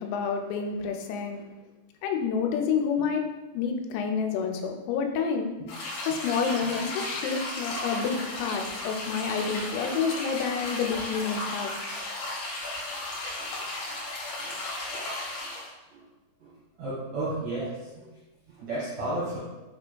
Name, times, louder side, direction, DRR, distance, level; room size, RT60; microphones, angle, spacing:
voice 1, 0.0-1.5 2.0-3.2 3.5-5.5 6.1-11.7, left 6 dB, 90° left, 4 dB, 3.2 m, -29 dB
sound 1, 5.7-15.7, left 2 dB, 70° left, 2.9 m, -35 dB
voice 2, 16.8-18.1 18.6-19.4, right 2 dB, 75° right, -9 dB, 1.8 m, -32 dB
7.2 x 3.4 x 2.2 m, 1.1 s
omnidirectional pair, 5.8 m